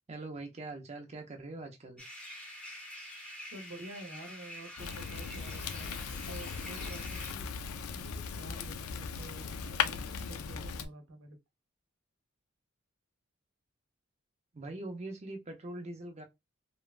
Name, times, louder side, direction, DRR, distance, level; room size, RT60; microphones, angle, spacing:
voice 1, 0.1-2.0 14.5-16.2, right 2 dB, 30° right, 0.6 m, -42 dB
sound 1, 2.0-7.3, equal, 5° left, 0.7 m, -47 dB
voice 2, 3.5-7.5 7.9-11.4, right 1 dB, 75° right, 0.8 m, -49 dB
Fire, 4.8-10.9, left 6 dB, 90° left, 0.4 m, -37 dB
3.0 x 2.2 x 2.4 m
head